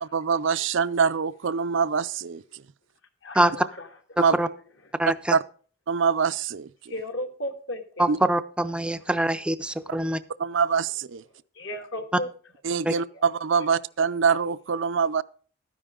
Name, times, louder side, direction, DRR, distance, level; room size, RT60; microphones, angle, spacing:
voice 1, 0.0-2.4 4.2-4.4 5.3-5.4 5.9-6.9 8.1-8.2 10.4-11.2 12.6-15.2, right 6 dB, 60° right, 0.5 m, -24 dB
voice 2, 3.2-3.9 6.9-8.0 11.6-12.3 13.1-13.2, left 1 dB, 60° left, 1.9 m, -34 dB
voice 3, 4.2-4.5 5.0-5.4 8.0-10.2 12.9-13.0, right 1 dB, 5° right, 0.5 m, -24 dB
13.0 x 10.0 x 3.7 m
head